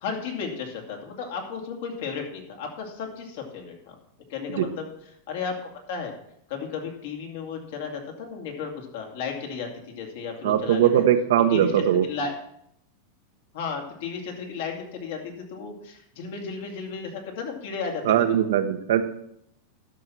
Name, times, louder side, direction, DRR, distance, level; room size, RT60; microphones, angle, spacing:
voice 1, 0.0-3.9 4.3-4.9 5.3-6.1 6.5-11.0 11.5-12.3 13.5-18.0 18.3-18.4, left 5 dB, 70° left, 2 dB, 2.6 m, -34 dB
voice 2, 10.4-12.1 18.0-19.0, right 10 dB, 80° right, 7 dB, 1.1 m, -20 dB
12.0 x 5.8 x 6.3 m, 0.73 s
supercardioid pair, 135°, 0 cm